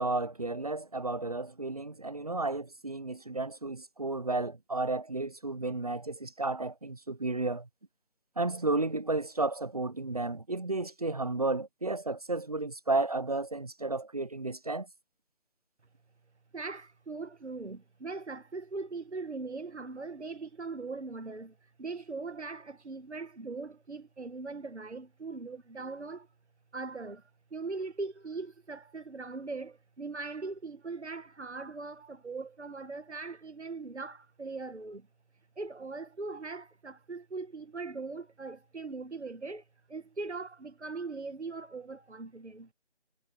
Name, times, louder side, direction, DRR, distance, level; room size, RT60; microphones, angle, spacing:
voice 1, 0.0-7.7 8.4-14.9, right 2 dB, 35° right, 0.6 m, -32 dB
voice 2, 16.5-26.3 26.7-27.2 27.5-35.1 35.6-42.7, right 3 dB, 85° right, 2.0 m, -40 dB
figure-of-eight pair, 170°, 33 cm